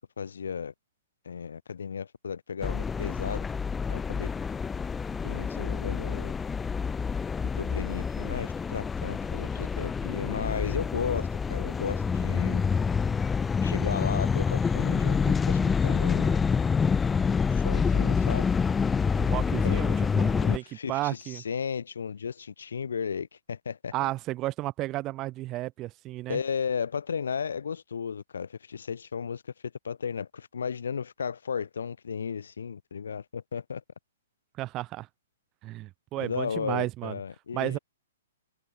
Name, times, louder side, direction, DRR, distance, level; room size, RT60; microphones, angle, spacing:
voice 1, 0.2-0.7 1.2-3.4 3.9-4.3 5.2-6.3 7.6-12.6 13.6-16.4 17.5-18.5 19.6-20.0 20.4-23.9 26.3-29.4 29.8-33.8 36.2-37.8, left 6 dB, 90° left, 5.0 m, -34 dB
sound 1, 2.6-20.6, left 5 dB, 10° left, 1.2 m, -27 dB
voice 2, 19.1-21.4 23.9-26.4 34.6-35.1 35.6-37.2 37.5-37.8, right 17 dB, 25° right, 2.5 m, -33 dB
hypercardioid pair, 155°, 0 cm